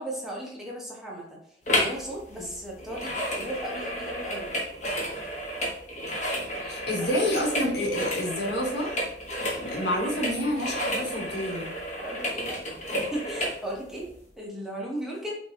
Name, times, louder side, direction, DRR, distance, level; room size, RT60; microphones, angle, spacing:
voice 1, 0.0-1.4 1.8-4.6 7.0-7.1 12.0-12.6 12.9-14.1 14.4-15.4, right 1 dB, ahead, -4 dB, 0.8 m, -36 dB
sound 1, 1.7-2.0 2.3-13.6 14.1-14.2, equal, 40° left, 1.2 m, -31 dB
voice 2, 6.6-9.0 9.6-11.7, left 1 dB, 65° left, -1 dB, 1.5 m, -28 dB
5.7 x 2.6 x 3.4 m, 0.72 s
head